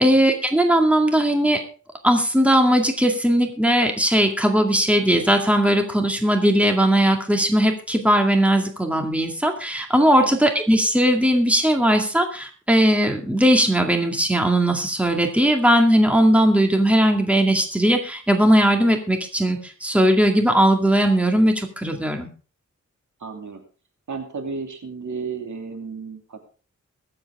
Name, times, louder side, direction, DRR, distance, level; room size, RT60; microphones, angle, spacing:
voice 1, 0.0-1.7 2.0-22.3, equal, 5° right, 4 dB, 2.1 m, -18 dB
voice 2, 23.2-23.6 24.1-26.4, right 5 dB, 75° right, 4 dB, 2.7 m, -33 dB
22.5 x 7.9 x 3.6 m, 0.36 s
wide cardioid pair, 105°, 30 cm